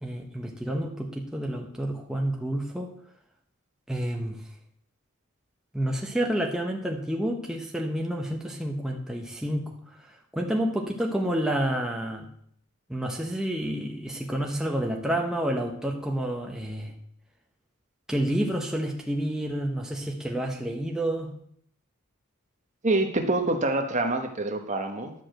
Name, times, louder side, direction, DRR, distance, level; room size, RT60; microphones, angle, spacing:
voice 1, 0.0-2.9 3.9-4.4 5.7-9.7 10.3-12.3 12.9-16.9 18.1-21.3, right 1 dB, 5° right, 0 dB, 0.9 m, -29 dB
voice 2, 22.8-25.1, right 2 dB, 35° right, 5 dB, 1.2 m, -26 dB
11.0 x 4.9 x 7.6 m, 0.67 s
head